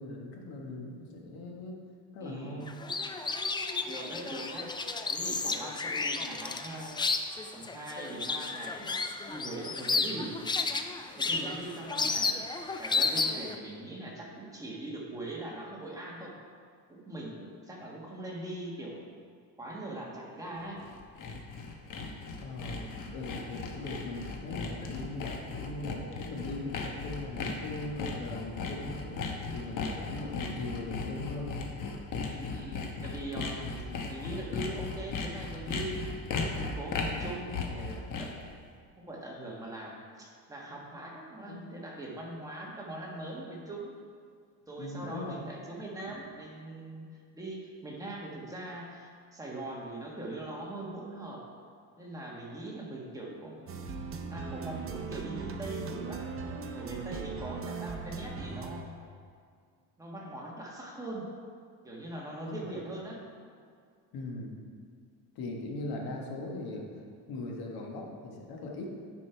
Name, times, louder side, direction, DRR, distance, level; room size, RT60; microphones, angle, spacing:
voice 1, 0.0-1.8 2.1-2.8 10.1-10.3 22.4-22.8 23.1-29.2 29.5-31.7 41.5-41.7 44.8-45.4 62.4-62.7 64.1-64.5 65.3-66.9 67.3-68.9, left 2 dB, 75° left, 0 dB, 1.5 m, -39 dB
voice 2, 2.2-2.6 3.8-4.7 5.1-6.9 7.5-8.9 9.2-10.4 11.1-12.4 12.8-16.4 16.9-19.1 19.6-20.8 32.2-36.1 36.4-38.4 39.0-43.9 44.7-47.1 47.3-51.4 52.0-56.2 56.7-59.0 60.0-61.3 61.8-63.2, right 1 dB, 10° right, -4 dB, 1.6 m, -41 dB
sound 1, 2.7-13.6, left 4 dB, 15° left, 0.3 m, -32 dB
Sawing, 20.6-38.5, left 4 dB, 60° left, 1.1 m, -37 dB
sound 2, 53.7-58.8, right 5 dB, 35° right, 0.7 m, -39 dB
9.7 x 5.4 x 4.6 m, 2.1 s
cardioid pair, 130°, 36 cm